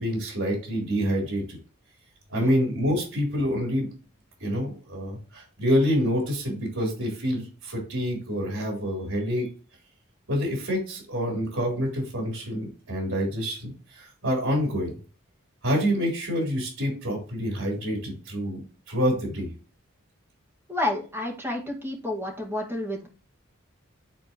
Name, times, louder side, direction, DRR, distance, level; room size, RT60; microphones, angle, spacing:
voice 1, 0.0-1.6 2.3-3.9 4.4-9.5 10.3-14.9 15.6-18.6 18.9-19.5, equal, 75° right, -1 dB, 3.9 m, -27 dB
voice 2, 20.7-23.1, left 1 dB, 10° right, -1 dB, 1.9 m, -30 dB
10.5 x 4.3 x 3.1 m, 0.36 s
head